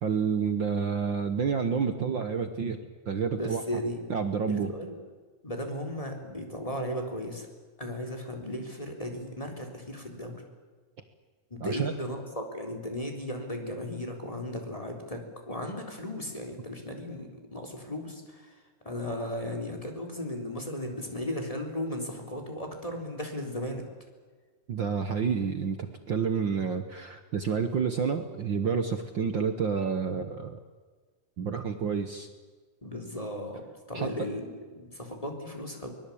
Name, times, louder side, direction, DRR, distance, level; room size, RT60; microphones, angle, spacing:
voice 1, 0.0-2.8 3.0-3.6 4.1-4.7 11.6-11.9 24.7-30.6 31.4-32.3 33.9-34.1, right 6 dB, 60° right, 8 dB, 1.2 m, -29 dB
voice 2, 3.3-4.0 4.5-4.9 5.4-7.5 7.8-10.4 11.5-18.5 18.8-23.8 32.8-33.6 33.9-35.9, left 1 dB, 10° left, 3 dB, 3.6 m, -36 dB
24.0 x 21.0 x 8.6 m, 1.4 s
omnidirectional pair, 3.7 m